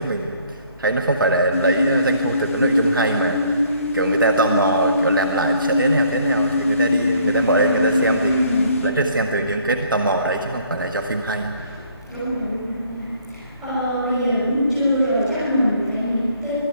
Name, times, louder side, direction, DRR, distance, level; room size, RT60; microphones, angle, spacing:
voice 1, 0.0-3.7 3.9-8.3 8.8-11.5, right 2 dB, 50° right, 4 dB, 1.7 m, -22 dB
sound 1, 1.5-8.9, left 2 dB, 30° left, 2.0 m, -22 dB
voice 2, 8.2-8.6 12.1-13.0 13.6-16.5, equal, 5° right, -15 dB, 5.7 m, -22 dB
23.5 x 17.0 x 9.5 m, 2.1 s
figure-of-eight pair, 175°, 14 cm